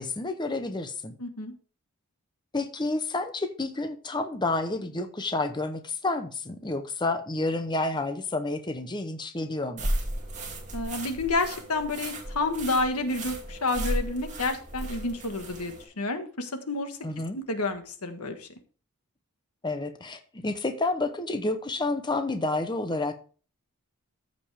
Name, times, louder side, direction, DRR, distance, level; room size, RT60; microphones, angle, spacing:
voice 1, 0.0-1.2 2.5-9.9 17.0-17.4 19.6-23.1, left 2 dB, 20° left, 7 dB, 0.8 m, -30 dB
voice 2, 1.2-1.5 10.7-17.0 17.3-18.5, left 2 dB, 85° left, 6 dB, 1.5 m, -30 dB
sound 1, 9.8-15.8, right 1 dB, 35° right, 2.4 m, -34 dB
14.0 x 5.3 x 3.4 m, 0.39 s
head